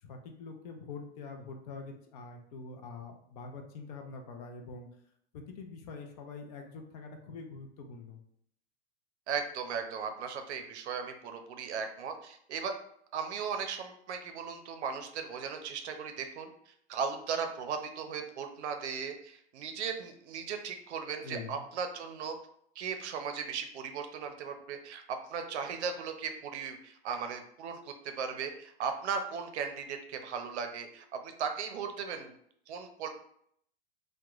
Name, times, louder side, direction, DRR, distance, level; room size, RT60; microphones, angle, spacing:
voice 1, 0.0-4.9 5.3-8.2 21.2-21.6, left 4 dB, 40° left, 3 dB, 0.4 m, -45 dB
voice 2, 9.3-12.8 13.1-22.4 22.8-32.3 32.7-33.1, right 6 dB, 80° right, 6 dB, 0.6 m, -37 dB
2.9 x 2.2 x 2.3 m, 0.67 s
supercardioid pair, 145°, 33 cm